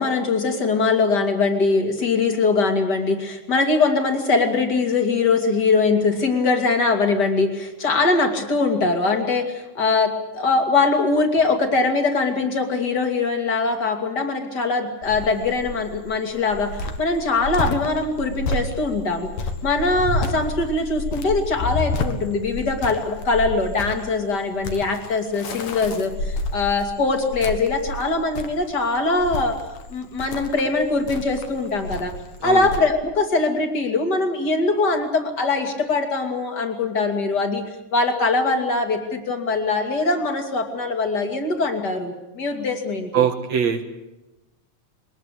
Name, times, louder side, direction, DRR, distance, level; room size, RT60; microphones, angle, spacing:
voice 1, 0.0-19.3 19.6-26.1 26.5-29.6 29.9-32.1 32.4-37.6 37.9-43.3, left 3 dB, 35° left, 5 dB, 3.1 m, -22 dB
Cricket, 15.0-32.8, left 2 dB, 65° left, 3.0 m, -30 dB
voice 2, 43.1-43.9, right 8 dB, 65° right, 5 dB, 2.5 m, -22 dB
22.5 x 20.0 x 8.5 m, 0.97 s
omnidirectional pair, 3.5 m